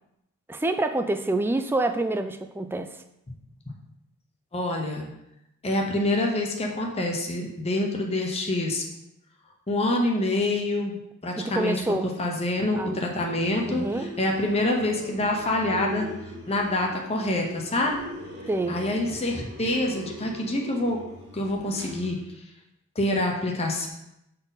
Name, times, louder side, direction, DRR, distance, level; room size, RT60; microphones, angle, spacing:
voice 1, 0.5-2.9 11.3-12.1 12.8-13.0 13.7-14.1 18.5-18.8, right 2 dB, 10° right, 8 dB, 0.3 m, -27 dB
voice 2, 4.5-5.1 5.6-8.8 9.7-11.8 12.2-16.1 16.5-18.0 18.7-21.0 21.3-22.2 23.0-23.9, left 1 dB, 30° left, 0 dB, 0.8 m, -26 dB
sound 1, 13.2-22.1, left 1 dB, 50° right, 2.0 m, -41 dB
6.6 x 4.1 x 4.0 m, 0.84 s
head